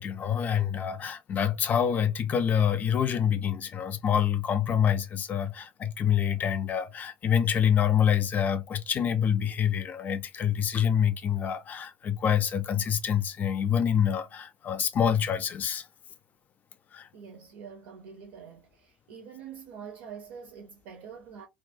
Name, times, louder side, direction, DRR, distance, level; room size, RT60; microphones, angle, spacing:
voice 1, 0.0-15.8 16.9-17.1, left 8 dB, 35° left, 0.4 m, -26 dB
voice 2, 17.1-21.5, right 7 dB, 60° right, 0.6 m, -45 dB
2.3 x 2.1 x 2.6 m
figure-of-eight pair, 65°, 5 cm